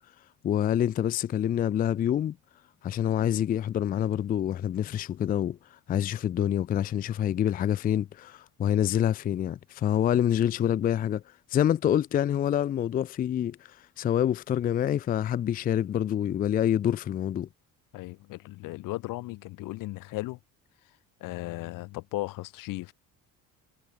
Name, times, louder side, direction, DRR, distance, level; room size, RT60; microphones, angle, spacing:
voice 1, 0.4-2.4 2.8-11.2 11.5-17.5, left 10 dB, 30° left, 0.4 m, -26 dB
voice 2, 17.9-20.4 21.2-22.9, left 20 dB, 85° left, 2.4 m, -36 dB
cardioid pair, 165°, 32 cm